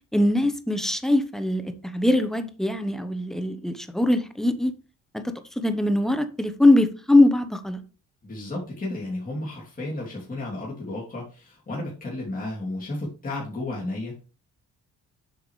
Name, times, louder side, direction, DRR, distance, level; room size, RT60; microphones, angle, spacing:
voice 1, 0.1-4.7 5.1-7.8, left 1 dB, ahead, 9 dB, 1.0 m, -22 dB
voice 2, 8.2-14.2, left 2 dB, 30° left, -5 dB, 3.0 m, -33 dB
8.2 x 5.8 x 3.2 m, 0.36 s
cardioid pair, 90°, 30 cm